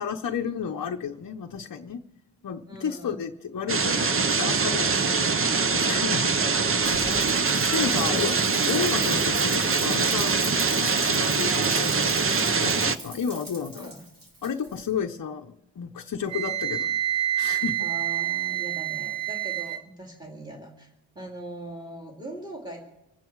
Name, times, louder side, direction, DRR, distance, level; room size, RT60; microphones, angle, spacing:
voice 1, 0.0-2.0 2.4-6.3 7.7-8.3 8.7-13.9 14.4-17.8, left 7 dB, 45° left, 2 dB, 0.8 m, -32 dB
voice 2, 2.7-3.3 6.3-8.3 13.7-14.0 17.8-22.8, right 1 dB, 10° right, -1 dB, 2.4 m, -41 dB
sound 1, 3.7-13.0, right 4 dB, 30° right, 0.6 m, -23 dB
Rain, 6.8-14.9, right 1 dB, 45° right, 3.8 m, -39 dB
Wind instrument woodwind instrument, 16.3-19.8, right 12 dB, 65° right, 2.4 m, -28 dB
26.0 x 9.1 x 4.6 m, 0.94 s
wide cardioid pair, 155°, 46 cm